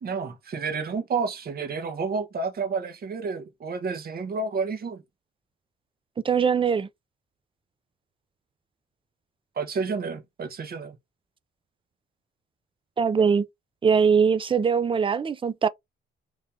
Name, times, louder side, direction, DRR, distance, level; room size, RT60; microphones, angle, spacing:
voice 1, 0.0-5.0 9.6-11.0, right 4 dB, 50° right, 1.1 m, -30 dB
voice 2, 6.2-6.9 13.0-13.5 13.8-15.7, right 6 dB, 25° right, 0.4 m, -21 dB
3.0 x 2.8 x 3.5 m
cardioid pair, 90°, 20 cm